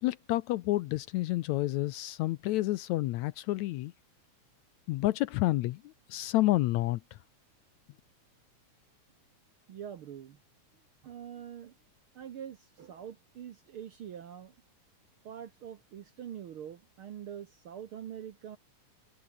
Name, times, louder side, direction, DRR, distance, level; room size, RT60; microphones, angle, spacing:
voice 1, 0.0-3.9 4.9-7.2, left 17 dB, 75° left, 1.8 m, -29 dB
voice 2, 9.7-10.4 11.0-11.7 12.1-14.5 15.2-18.6, right 9 dB, 65° right, 1.4 m, -44 dB
omnidirectional pair, 3.6 m